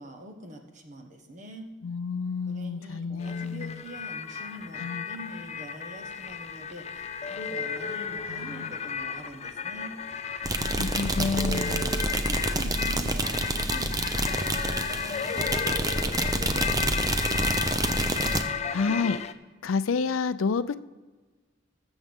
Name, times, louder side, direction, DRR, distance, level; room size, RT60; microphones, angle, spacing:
voice 1, 0.0-1.7 2.5-10.0 12.1-17.5, equal, 35° right, 4 dB, 1.3 m, -44 dB
voice 2, 1.8-3.8 4.8-5.0 8.3-8.7 10.5-12.0 18.7-19.2 19.6-20.7, left 5 dB, 90° left, 14 dB, 0.5 m, -29 dB
sound 1, 3.2-19.3, left 6 dB, 30° left, 0.4 m, -34 dB
sound 2, 10.4-18.4, right 2 dB, 20° right, 0.6 m, -28 dB
20.0 x 7.1 x 3.6 m, 1.3 s
head